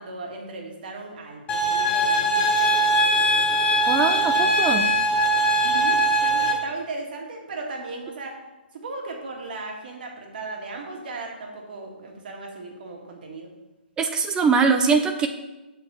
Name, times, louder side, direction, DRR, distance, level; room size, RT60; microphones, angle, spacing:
voice 1, 0.0-2.8 4.3-4.4 5.6-8.4 8.7-13.5, right 3 dB, 60° right, 1 dB, 1.9 m, -36 dB
sound 1, 1.5-6.5, right 1 dB, 20° left, 1.2 m, -21 dB
voice 2, 3.9-4.9 14.0-15.3, right 5 dB, 15° right, 6 dB, 0.4 m, -22 dB
7.1 x 4.0 x 6.3 m, 1.1 s
hypercardioid pair, 145°, 6 cm